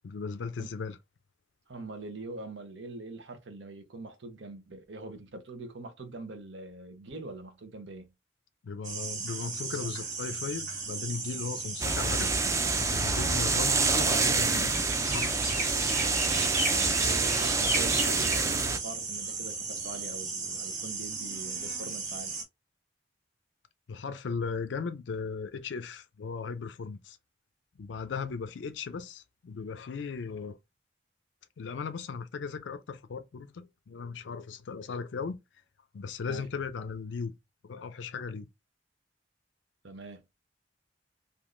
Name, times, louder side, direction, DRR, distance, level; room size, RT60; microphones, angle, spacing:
voice 1, 0.0-1.0 8.6-15.5 23.9-27.2 27.8-30.6 31.6-35.4 35.9-37.3 37.7-38.5, left 5 dB, 90° left, 0.4 m, -37 dB
voice 2, 1.7-8.1 16.7-22.3 36.2-36.5 39.8-40.2, right 2 dB, 90° right, 0.8 m, -43 dB
sound 1, 8.8-22.4, right 3 dB, 45° right, 1.3 m, -35 dB
sound 2, 11.8-18.8, right 4 dB, 15° right, 0.3 m, -27 dB
3.5 x 2.6 x 2.5 m
head